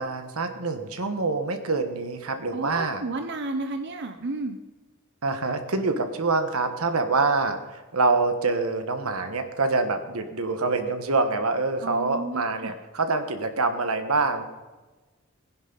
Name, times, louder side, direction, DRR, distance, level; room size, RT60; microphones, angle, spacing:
voice 1, 0.0-3.0 5.2-14.4, right 3 dB, 85° right, 7 dB, 1.4 m, -26 dB
voice 2, 2.5-4.6 11.8-12.7, right 3 dB, 55° right, 6 dB, 0.8 m, -32 dB
20.0 x 10.5 x 4.1 m, 1.2 s
head